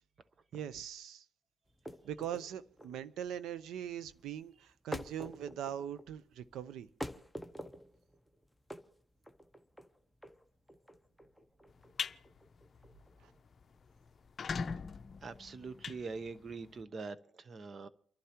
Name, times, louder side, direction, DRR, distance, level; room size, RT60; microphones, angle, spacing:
voice 1, 0.5-1.2 2.0-6.9 13.2-13.3, right 10 dB, 80° right, 0.7 m, -41 dB
sound 1, 1.7-14.6, equal, ahead, 0.9 m, -48 dB
sound 2, 11.7-12.2 12.6-12.8 13.2-13.3 13.5-13.6 14.2-16.7, left 5 dB, 45° left, 0.6 m, -40 dB
voice 2, 15.2-17.9, right 4 dB, 45° right, 0.9 m, -43 dB
29.0 x 11.5 x 3.0 m
cardioid pair, 90°, 0 cm